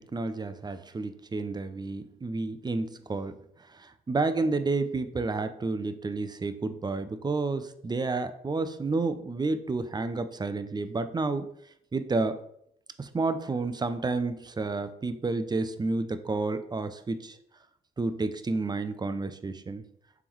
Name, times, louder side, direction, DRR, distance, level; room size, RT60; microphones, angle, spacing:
voice 1, 0.1-3.3 3.8-11.5 11.9-12.4 13.0-17.4 18.0-19.8, right 3 dB, 20° right, 10 dB, 0.5 m, -30 dB
4.6 x 3.5 x 3.1 m, 0.72 s
hypercardioid pair, 45°, 21 cm